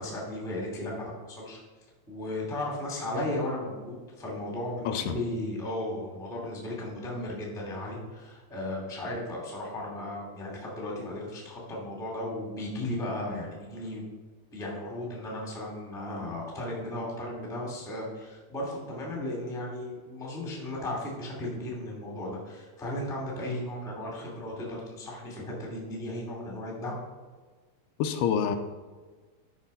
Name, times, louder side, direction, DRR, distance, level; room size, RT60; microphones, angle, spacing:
voice 1, 0.0-1.6 2.1-14.0 14.5-26.9, left 1 dB, ahead, -2 dB, 1.5 m, -35 dB
voice 2, 4.9-5.2 28.0-28.6, left 8 dB, 85° left, 7 dB, 2.7 m, -27 dB
12.0 x 5.3 x 5.5 m, 1.4 s
omnidirectional pair, 4.7 m